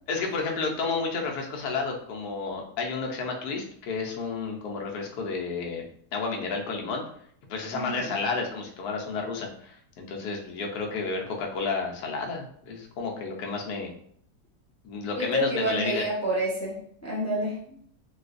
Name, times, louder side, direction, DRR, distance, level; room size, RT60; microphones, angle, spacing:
voice 1, 0.1-5.9 6.1-7.0 7.5-13.9 14.8-16.0, left 4 dB, 70° left, 0 dB, 1.2 m, -31 dB
voice 2, 7.7-8.2 15.1-17.6, right 1 dB, 15° left, -8 dB, 0.6 m, -29 dB
4.0 x 2.3 x 2.5 m, 0.63 s
omnidirectional pair, 1.9 m